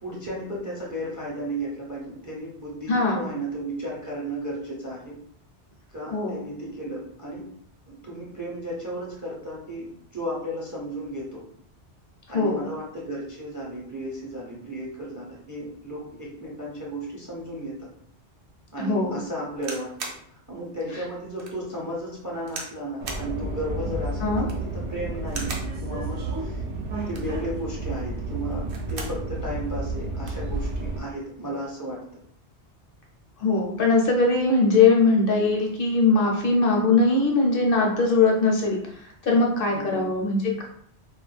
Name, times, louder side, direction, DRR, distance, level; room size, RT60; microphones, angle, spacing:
voice 1, 0.0-5.1 5.9-7.5 7.9-11.4 12.3-17.9 18.7-19.9 20.5-26.6 27.1-32.0 39.7-40.1, right 1 dB, 25° right, -4 dB, 0.4 m, -34 dB
voice 2, 2.9-3.2 6.1-6.4 12.3-12.7 18.8-19.2 24.2-24.4 33.4-38.8 39.2-40.4, left 3 dB, 65° left, 0 dB, 0.7 m, -21 dB
sound 1, 19.6-20.2 20.8-20.9 21.4-21.6 22.5-22.8 23.1-23.3 24.3-24.7 25.3-25.7 27.0-27.4 28.5-29.2 29.6-29.7 29.9-30.4 31.3-31.6, right 3 dB, 60° right, 0.7 m, -37 dB
Subway metro underground, 23.0-31.0, right 2 dB, 90° right, 0.9 m, -31 dB
2.3 x 2.1 x 3.2 m, 0.65 s
omnidirectional pair, 1.1 m